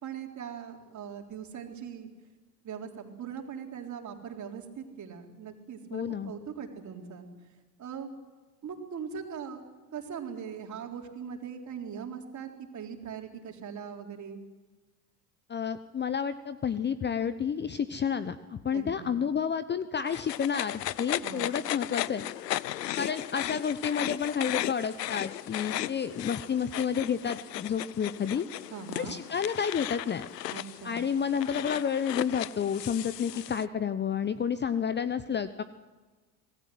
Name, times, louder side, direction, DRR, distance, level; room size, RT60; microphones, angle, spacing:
voice 1, 0.0-2.1 2.6-7.3 7.8-8.2 8.6-9.6 9.9-14.4 18.7-19.2 21.2-21.5 28.7-29.1 30.5-31.2, right 7 dB, 35° right, 2 dB, 4.0 m, -40 dB
voice 2, 5.9-6.3 15.5-22.2 23.0-28.5 29.0-30.3 30.8-35.6, left 7 dB, 20° left, 14 dB, 0.9 m, -30 dB
sound 1, 20.1-33.6, left 14 dB, 80° left, 0.7 m, -36 dB
26.0 x 19.0 x 7.9 m, 1.3 s
figure-of-eight pair, 75°, 48 cm